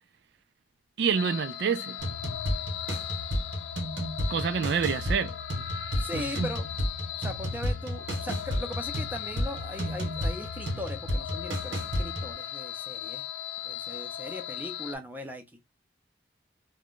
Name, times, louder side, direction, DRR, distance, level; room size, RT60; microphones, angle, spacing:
voice 1, 1.0-2.0 4.3-5.3 6.1-6.5, right 6 dB, 65° right, 0.3 m, -27 dB
sound 1, 1.1-15.0, left 10 dB, 85° left, 0.3 m, -38 dB
sound 2, 2.0-12.3, equal, 90° right, 1.2 m, -32 dB
voice 2, 6.0-6.7 7.2-13.3 13.6-15.4, equal, 10° right, 0.5 m, -39 dB
2.5 x 2.2 x 3.6 m
head